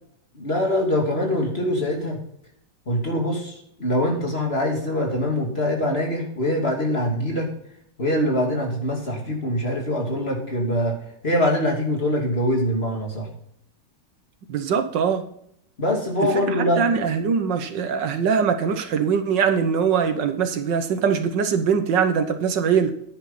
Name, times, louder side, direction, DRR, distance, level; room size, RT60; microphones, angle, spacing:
voice 1, 0.3-2.2 2.9-7.5 8.0-11.0 11.2-13.3 15.8-16.8, left 1 dB, 30° left, 2.9 m, -23 dB
voice 2, 14.5-15.2 16.3-22.9, right 6 dB, 75° right, 1.7 m, -22 dB
10.5 x 10.0 x 4.1 m
omnidirectional pair, 2.0 m